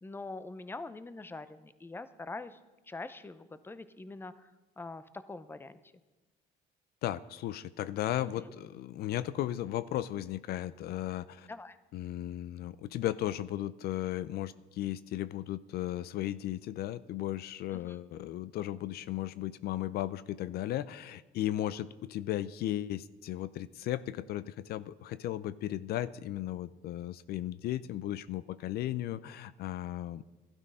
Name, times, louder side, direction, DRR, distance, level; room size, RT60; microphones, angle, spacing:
voice 1, 0.0-2.6 2.9-5.8 8.2-8.3 11.5-11.8 17.7-18.0, left 3 dB, 15° left, 13 dB, 0.7 m, -44 dB
voice 2, 7.0-11.5 11.9-30.3, left 13 dB, 70° left, 16 dB, 0.5 m, -35 dB
12.0 x 11.5 x 5.5 m, 1.1 s
cardioid pair, 110°, 17 cm